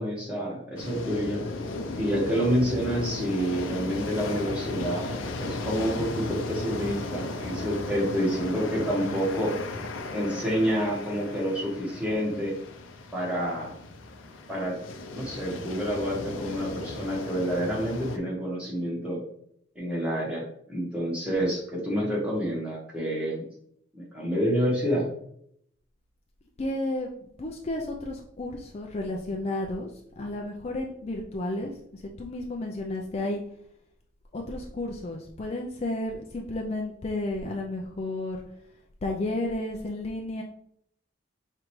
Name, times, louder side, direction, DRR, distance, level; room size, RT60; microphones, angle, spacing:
voice 1, 0.0-1.4 2.0-5.1 5.4-9.5 10.1-12.5 13.1-13.7 14.5-14.8 15.1-19.2 19.7-23.4 23.9-25.1, equal, 5° right, -5 dB, 1.3 m, -28 dB
sound 1, 0.8-18.2, left 2 dB, 85° left, 0.6 m, -36 dB
voice 2, 26.6-27.1 27.4-29.9 30.2-33.4 34.3-38.4 39.0-40.4, left 2 dB, 35° left, 0 dB, 0.4 m, -32 dB
5.0 x 3.3 x 3.1 m, 0.70 s
head